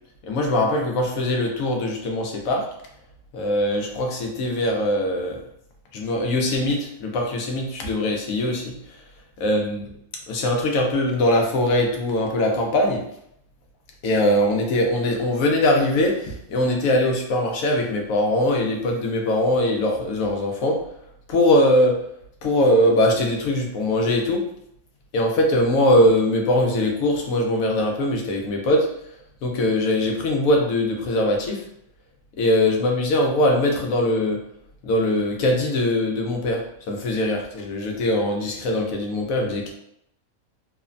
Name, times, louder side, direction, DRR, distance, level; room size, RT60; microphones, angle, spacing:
voice 1, 0.2-2.7 3.3-5.4 5.9-8.8 9.4-9.8 10.3-13.0 14.0-20.8 21.3-22.0 22.4-24.5 25.1-28.9 29.4-31.6 32.4-34.4 34.8-39.7, left 1 dB, 75° left, 1 dB, 1.0 m, -21 dB
3.1 x 2.1 x 2.4 m, 0.74 s
omnidirectional pair, 1.5 m